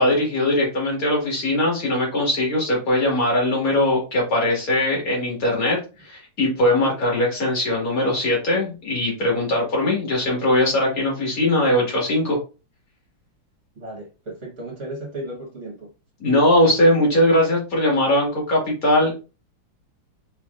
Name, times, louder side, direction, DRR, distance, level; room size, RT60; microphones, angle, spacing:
voice 1, 0.0-12.4 16.2-19.2, left 1 dB, 45° left, -2 dB, 2.4 m, -20 dB
voice 2, 13.8-15.9, right 1 dB, 40° right, -2 dB, 1.7 m, -35 dB
5.3 x 3.5 x 2.5 m, 0.32 s
omnidirectional pair, 2.3 m